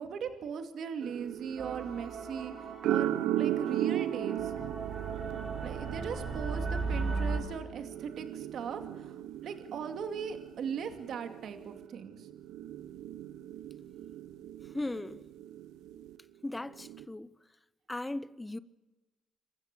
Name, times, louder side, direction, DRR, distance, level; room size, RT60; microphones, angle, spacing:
voice 1, 0.0-4.5 5.6-12.3, right 7 dB, 65° right, 2.5 m, -39 dB
sound 1, 1.0-16.2 16.7-17.0, right 12 dB, 85° right, 0.9 m, -37 dB
sound 2, 1.6-7.4, right 4 dB, 50° right, 5.6 m, -37 dB
voice 2, 14.7-15.2 16.4-17.3 17.9-18.6, left 2 dB, 15° left, 0.8 m, -37 dB
27.0 x 14.5 x 6.8 m
cardioid pair, 90°, 0 cm